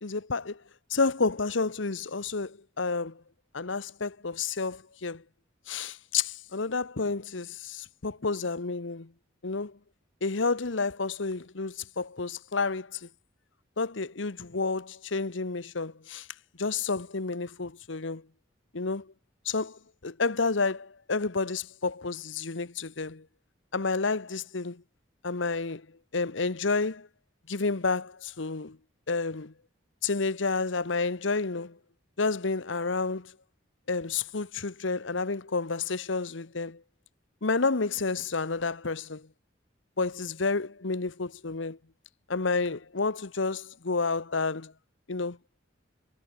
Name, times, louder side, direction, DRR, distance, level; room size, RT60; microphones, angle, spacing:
voice 1, 0.0-0.6 0.9-3.2 3.5-5.2 5.7-9.1 9.4-9.8 10.2-13.1 13.8-16.3 16.6-18.2 18.7-19.1 19.4-23.2 23.7-24.8 25.2-25.9 26.1-27.1 27.5-28.8 29.1-29.5 30.0-31.8 32.2-33.3 33.9-36.8 37.4-39.3 40.0-41.8 42.3-44.7 45.1-45.4, left 4 dB, 75° left, 1.1 m, -30 dB
head